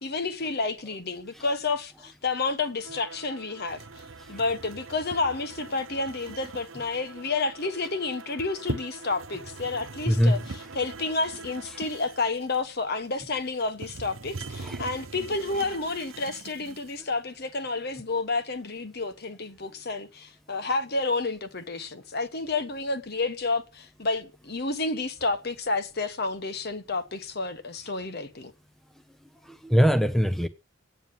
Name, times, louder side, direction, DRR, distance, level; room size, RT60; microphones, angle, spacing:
voice 1, 0.0-3.8 4.3-28.5, left 3 dB, 50° left, 1.3 m, -30 dB
Bowed string instrument, 2.7-12.2, right 3 dB, 70° right, 1.0 m, -47 dB
sound 1, 3.7-17.0, right 3 dB, 90° right, 1.0 m, -42 dB
voice 2, 29.4-30.5, equal, ahead, 0.7 m, -22 dB
9.1 x 9.0 x 9.5 m
head